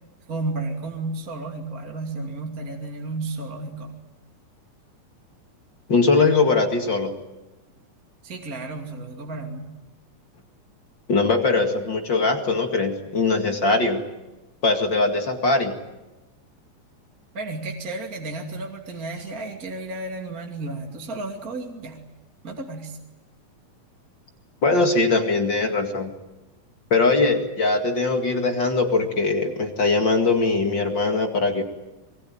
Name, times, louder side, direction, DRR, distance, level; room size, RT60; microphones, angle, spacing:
voice 1, 0.3-3.9 8.2-9.7 17.3-22.0 22.4-23.0, right 2 dB, 25° right, 1 dB, 2.8 m, -32 dB
voice 2, 5.9-7.1 11.1-14.0 14.6-15.7 24.6-26.1 26.9-31.6, left 3 dB, 35° left, 4 dB, 2.4 m, -21 dB
26.5 x 22.0 x 9.2 m, 1.0 s
omnidirectional pair, 4.0 m